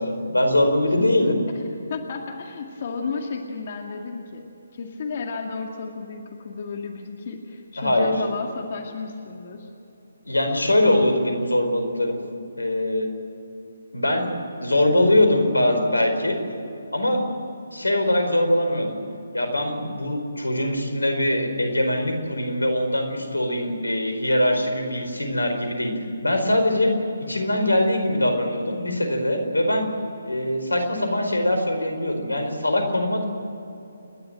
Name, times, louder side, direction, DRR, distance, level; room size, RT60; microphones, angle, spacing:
voice 1, 0.0-1.4 7.8-8.1 10.2-12.2 12.6-13.1 13.9-14.3 14.6-16.4 16.9-17.2 17.7-19.0 19.3-26.9 27.3-29.9 30.2-33.2, left 1 dB, 90° left, 5 dB, 4.7 m, -22 dB
voice 2, 1.0-1.3 1.9-4.5 4.7-9.7, left 5 dB, 45° left, 2 dB, 2.1 m, -33 dB
29.5 x 12.0 x 9.0 m, 2.8 s
figure-of-eight pair, 145°, 0 cm